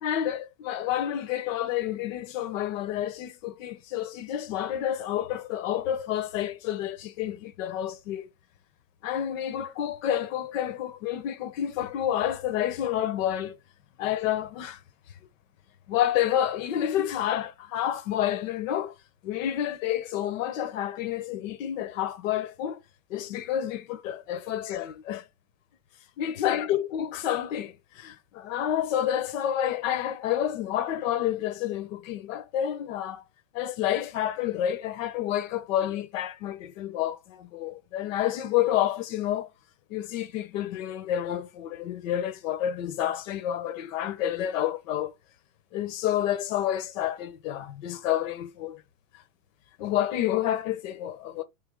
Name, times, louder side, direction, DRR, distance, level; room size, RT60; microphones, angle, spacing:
voice 1, 0.0-8.3 9.0-13.6 14.0-14.8 15.9-18.9 19.2-22.8 23.1-25.2 26.2-33.2 33.5-39.5 39.9-45.1 45.7-48.8 49.8-51.4, left 11 dB, 60° left, 0.8 m, -29 dB
3.3 x 3.0 x 3.5 m
hypercardioid pair, 120°, 44 cm